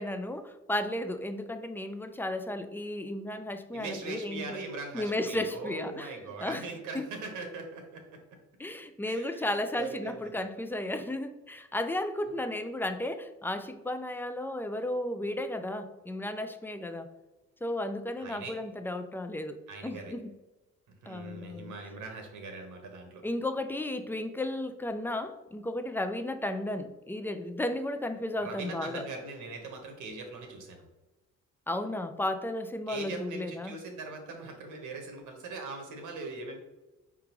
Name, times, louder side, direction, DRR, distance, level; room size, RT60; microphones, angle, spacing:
voice 1, 0.0-4.6 4.9-6.1 6.4-6.6 6.9-7.0 8.6-17.1 17.6-20.3 21.1-21.7 23.2-29.1 31.7-33.7, left 1 dB, 5° left, 9 dB, 0.3 m, -34 dB
voice 2, 3.7-8.2 9.0-10.5 12.3-12.4 18.2-18.5 19.7-20.1 21.0-23.2 28.4-30.8 32.9-36.6, right 3 dB, 80° right, 3 dB, 1.1 m, -41 dB
4.7 x 3.6 x 3.0 m, 1.1 s
cardioid pair, 90°, 30 cm